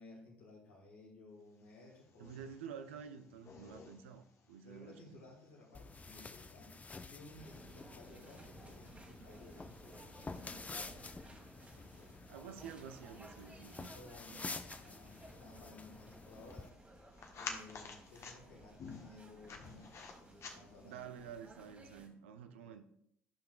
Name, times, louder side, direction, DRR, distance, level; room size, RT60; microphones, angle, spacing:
voice 1, 0.0-2.5 4.6-6.8 7.1-11.0 11.6-12.1 13.9-16.7 17.3-21.1 22.0-22.3 22.6-22.8, left 2 dB, 85° left, -3 dB, 2.6 m, -57 dB
sound 1, 1.6-21.0, left 4 dB, 50° left, 1.3 m, -55 dB
voice 2, 2.2-5.1 12.3-13.9 14.3-14.4 20.8-22.8, right 7 dB, 80° right, 8 dB, 0.5 m, -50 dB
sound 2, 5.7-16.7, left 3 dB, 25° left, 0.6 m, -50 dB
sound 3, 7.4-22.1, right 1 dB, 20° right, 1.7 m, -57 dB
13.0 x 5.7 x 2.4 m, 0.72 s
hypercardioid pair, 55°, 6 cm